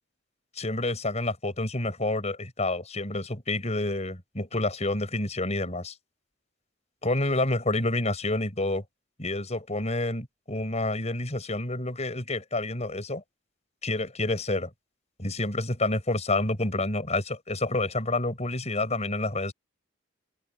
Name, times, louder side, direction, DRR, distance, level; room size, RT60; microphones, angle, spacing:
voice 1, 0.6-5.9 7.0-8.8 9.2-13.2 13.8-14.7 15.2-19.5, left 2 dB, 35° left, 6.1 m, -28 dB
open air
head